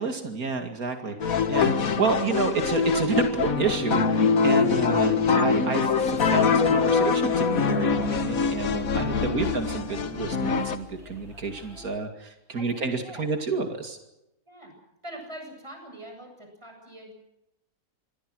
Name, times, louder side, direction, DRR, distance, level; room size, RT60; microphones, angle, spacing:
voice 1, 0.0-14.0, right 4 dB, 80° right, 5 dB, 2.7 m, -29 dB
sound 1, 1.2-10.8, left 5 dB, 70° left, 1.8 m, -24 dB
sound 2, 5.9-11.9, left 3 dB, 45° left, 6.9 m, -47 dB
voice 2, 8.9-9.6 12.5-13.3 14.5-14.7 15.0-17.1, right 1 dB, 20° right, 3 dB, 8.0 m, -43 dB
28.0 x 22.0 x 6.3 m, 0.90 s
omnidirectional pair, 1.5 m